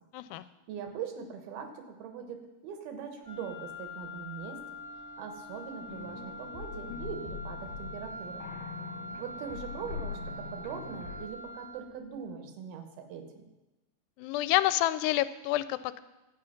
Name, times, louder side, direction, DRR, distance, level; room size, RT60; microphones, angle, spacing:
voice 1, 0.1-0.4 14.2-16.0, left 15 dB, 85° left, 14 dB, 2.6 m, -28 dB
voice 2, 0.7-4.6 5.2-8.5 9.2-13.4, right 7 dB, 70° right, 6 dB, 2.9 m, -41 dB
Wind instrument woodwind instrument, 3.2-11.9, left 1 dB, 20° left, 0.4 m, -44 dB
Bowed string instrument, 4.3-7.3, right 5 dB, 85° right, 3.9 m, -57 dB
sound 1, 5.9-11.3, left 6 dB, 65° left, 2.4 m, -42 dB
13.0 x 8.9 x 5.8 m, 1.0 s
omnidirectional pair, 4.7 m